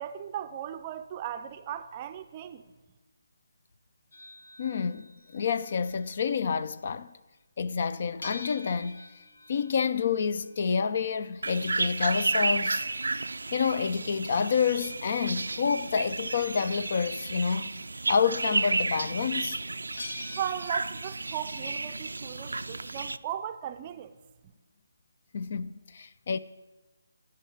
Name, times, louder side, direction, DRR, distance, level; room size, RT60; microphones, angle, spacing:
voice 1, 0.0-2.6 20.4-24.1, right 10 dB, 25° right, 0.5 m, -37 dB
sound 1, 4.1-6.3 8.2-14.9 20.0-20.7, left 2 dB, 75° left, 1.7 m, -47 dB
voice 2, 4.6-7.1 7.6-9.0 9.5-12.9 13.5-17.7 18.1-19.6 25.3-26.4, left 6 dB, 45° left, 0.4 m, -28 dB
sound 2, 11.4-23.2, right 3 dB, 90° right, 0.4 m, -32 dB
12.5 x 5.6 x 8.0 m
hypercardioid pair, 165°, 0 cm